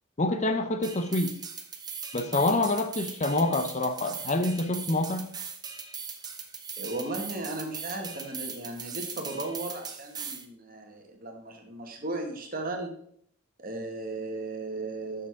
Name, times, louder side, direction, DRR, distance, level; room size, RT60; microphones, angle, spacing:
voice 1, 0.2-1.3 2.1-5.2, left 2 dB, 35° left, 7 dB, 0.6 m, -26 dB
sound 1, 0.8-10.5, right 6 dB, 20° right, 0.7 m, -40 dB
voice 2, 6.8-12.9 13.6-15.3, right 2 dB, 40° right, 3 dB, 1.5 m, -36 dB
7.1 x 6.5 x 4.7 m, 0.64 s
head